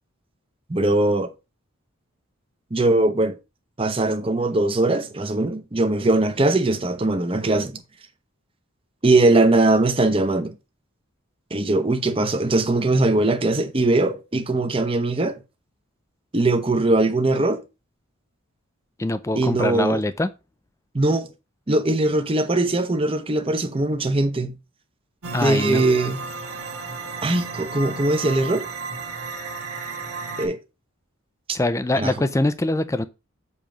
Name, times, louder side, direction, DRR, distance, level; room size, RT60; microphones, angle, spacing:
voice 1, 0.7-1.3 2.7-3.4 3.8-7.8 9.0-10.5 11.5-15.4 16.3-17.6 19.4-20.0 20.9-21.3 21.7-24.5 25.4-26.2 27.2-28.7 30.4-30.6 32.0-32.1, right 2 dB, 25° right, 0.7 m, -20 dB
voice 2, 19.0-20.3 25.3-25.9 31.5-33.1, left 1 dB, 15° left, 0.3 m, -23 dB
sound 1, 25.2-30.5, right 4 dB, 90° right, 1.5 m, -33 dB
7.2 x 3.0 x 4.9 m
head